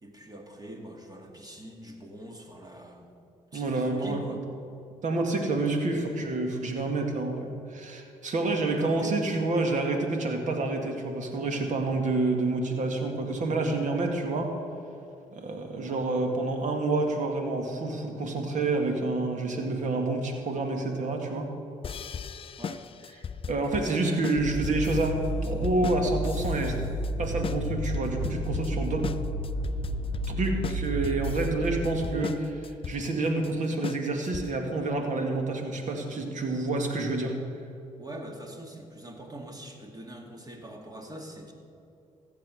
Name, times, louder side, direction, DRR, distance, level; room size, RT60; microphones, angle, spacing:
voice 1, 0.0-3.2 3.5-4.4 5.6-5.8 8.8-9.2 15.8-16.0 22.6-22.9 23.8-24.2 38.0-41.5, right 1 dB, 25° right, 2 dB, 2.2 m, -43 dB
voice 2, 3.5-4.4 5.0-14.5 15.3-21.5 23.5-26.8 27.2-29.1 30.3-37.4, right 2 dB, 60° right, 3 dB, 2.1 m, -28 dB
sound 1, 21.8-34.7, left 7 dB, 40° left, 0.4 m, -38 dB
sound 2, 24.4-32.1, right 1 dB, 90° right, 2.2 m, -32 dB
15.5 x 7.6 x 6.3 m, 2.7 s
supercardioid pair, 60°, 14 cm